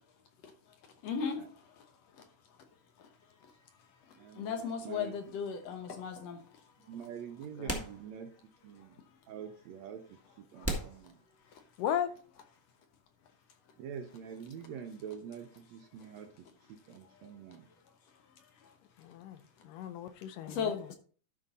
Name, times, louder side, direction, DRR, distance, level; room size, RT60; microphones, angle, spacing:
voice 1, 1.0-1.4 4.4-6.4 20.4-21.0, left 6 dB, 65° left, 6 dB, 1.8 m, -35 dB
voice 2, 4.2-5.1 6.9-9.0 9.3-11.2 13.8-16.3 16.7-17.7, right 8 dB, 75° right, 6 dB, 1.7 m, -46 dB
sound 1, 5.8-5.9 7.0-7.1 7.6-8.6 8.9-9.0 9.7-9.8 10.6-11.9, right 1 dB, 10° left, 0.9 m, -38 dB
voice 3, 11.8-12.1 19.0-19.4 19.6-20.9, left 10 dB, 85° left, 11 dB, 2.5 m, -36 dB
12.5 x 5.3 x 4.0 m, 0.43 s
omnidirectional pair, 3.7 m